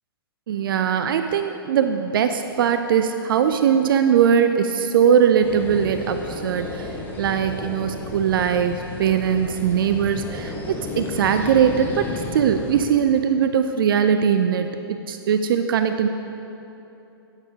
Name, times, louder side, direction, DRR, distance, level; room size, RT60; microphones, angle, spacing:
voice 1, 0.5-16.1, right 8 dB, 60° right, 8 dB, 0.4 m, -20 dB
sound 1, 5.4-12.9, left 2 dB, 15° left, 0.8 m, -33 dB
9.6 x 8.4 x 2.8 m, 3.0 s
hypercardioid pair, 120°, 13 cm